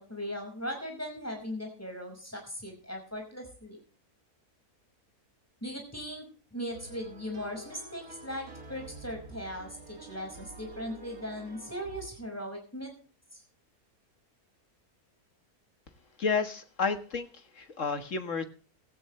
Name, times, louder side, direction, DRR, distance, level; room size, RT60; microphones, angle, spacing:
voice 1, 0.0-3.8 5.6-6.2 6.5-12.9 13.3-13.4, equal, 10° left, 3 dB, 5.5 m, -38 dB
sound 1, 6.7-12.1, right 2 dB, 70° right, 3.2 m, -48 dB
voice 2, 16.2-18.4, left 5 dB, 55° left, 9 dB, 1.9 m, -31 dB
16.5 x 15.0 x 3.3 m, 0.40 s
omnidirectional pair, 1.6 m